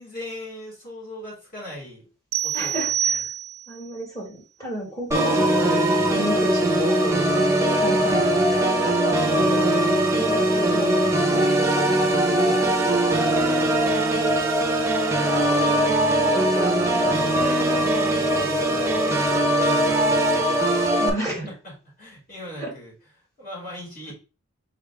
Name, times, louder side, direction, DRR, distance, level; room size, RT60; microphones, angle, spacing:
voice 1, 0.0-2.1 2.4-3.2 7.9-8.3 9.0-9.7 12.4-12.6 15.2-16.0 16.2-19.1 19.6-20.3 21.3-22.9 23.4-24.1, equal, 40° left, -4 dB, 2.4 m, -38 dB
sound 1, 2.3-3.8, right 9 dB, 70° right, 0.4 m, -26 dB
voice 2, 2.5-3.2 3.7-7.2 7.8-8.9 9.3-9.8 10.1-12.7 13.4-13.6 20.3-20.5 21.0-21.5 22.6-22.7, right 1 dB, 15° left, -3 dB, 1.7 m, -33 dB
Organ, 5.1-21.1, right 1 dB, 15° right, 0.6 m, -21 dB
4.0 x 3.2 x 3.5 m, 0.33 s
head